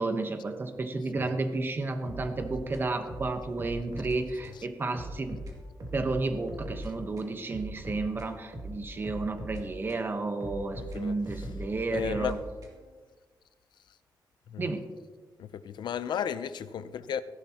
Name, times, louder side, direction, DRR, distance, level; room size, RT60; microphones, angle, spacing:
voice 1, 0.0-5.4 5.9-12.4 14.6-14.9, right 3 dB, 30° right, 1.0 m, -32 dB
sound 1, 2.1-4.2 4.4-4.6 4.9-6.9 7.2-10.1 10.4-12.9, right 1 dB, 55° right, 2.4 m, -40 dB
voice 2, 10.8-11.1 11.9-12.4 14.5-14.6 15.4-17.2, left 8 dB, 85° left, 0.5 m, -34 dB
15.5 x 11.5 x 2.9 m
wide cardioid pair, 160°, 8 cm